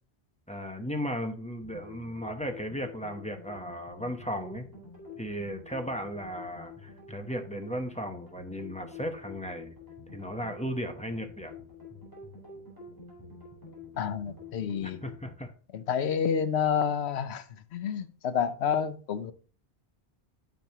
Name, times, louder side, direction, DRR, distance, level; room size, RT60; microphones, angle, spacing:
voice 1, 0.5-4.7 5.2-9.8 10.1-11.5 14.8-15.5, equal, 5° left, 0.8 m, -36 dB
sound 1, 1.6-15.3, left 3 dB, 20° right, 3.6 m, -48 dB
voice 2, 14.0-15.0 15.7-17.4 17.7-19.3, left 7 dB, 90° left, 1.0 m, -29 dB
9.2 x 6.1 x 2.9 m
omnidirectional pair, 1.1 m